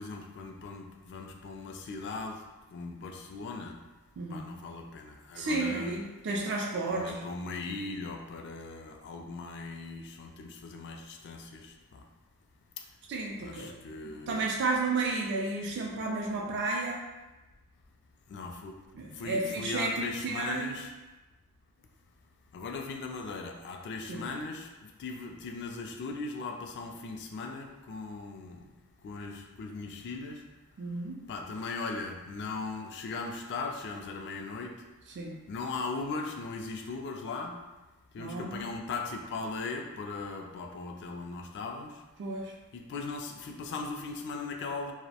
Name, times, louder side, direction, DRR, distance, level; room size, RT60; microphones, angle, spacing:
voice 1, 0.0-2.4 2.7-3.7 4.3-6.0 6.9-12.0 13.4-14.4 18.3-18.7 19.1-20.9 22.5-24.7 25.0-28.6 29.0-30.4 31.3-34.7 35.5-37.5 38.1-41.9 42.7-44.9, left 3 dB, 50° left, 3 dB, 0.3 m, -38 dB
voice 2, 5.4-7.3 13.1-13.7 14.3-17.0 19.0-20.7 24.1-24.2 30.8-31.2 35.2-35.4 38.2-38.7 42.2-42.5, right 3 dB, 50° right, -1 dB, 0.3 m, -32 dB
2.5 x 2.0 x 2.7 m, 1.1 s
head